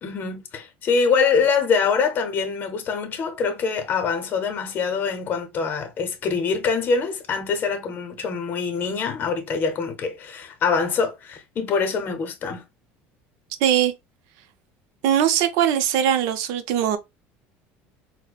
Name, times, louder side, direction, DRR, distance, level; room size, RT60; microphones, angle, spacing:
voice 1, 0.0-12.6, left 5 dB, 40° left, 0.7 m, -24 dB
voice 2, 13.6-13.9 15.0-17.0, right 10 dB, 75° right, 0.6 m, -20 dB
4.2 x 2.1 x 2.3 m
cardioid pair, 130°, 5 cm